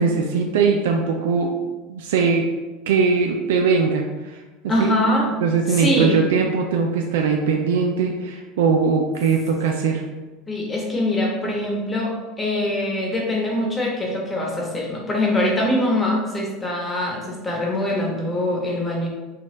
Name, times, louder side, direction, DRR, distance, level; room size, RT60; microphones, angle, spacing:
voice 1, 0.0-2.5 2.9-4.4 4.6-5.0 5.4-10.1, right 5 dB, 85° right, 2 dB, 0.4 m, -21 dB
voice 2, 4.7-5.3 5.7-6.2 10.5-19.1, left 1 dB, 20° left, -2 dB, 1.1 m, -23 dB
4.1 x 2.3 x 3.7 m, 1.2 s
supercardioid pair, 115°, 0 cm